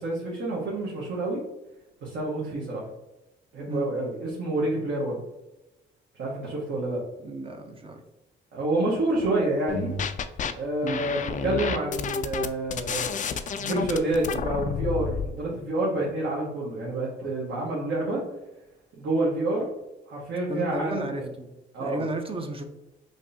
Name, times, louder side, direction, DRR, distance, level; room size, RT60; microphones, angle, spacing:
voice 1, 0.0-1.4 2.0-2.8 3.5-5.2 6.2-7.0 8.5-9.9 10.5-18.2 19.0-19.6 20.1-21.3 21.7-22.0, right 2 dB, 65° right, -5 dB, 1.2 m, -28 dB
voice 2, 7.2-8.0 10.8-11.0 20.5-21.5 21.8-22.6, right 1 dB, 25° right, 4 dB, 0.6 m, -33 dB
sound 1, 9.7-10.5 10.9-15.3, left 6 dB, 40° left, 0.4 m, -30 dB
5.1 x 2.7 x 2.7 m, 0.98 s
cardioid pair, 90°, 20 cm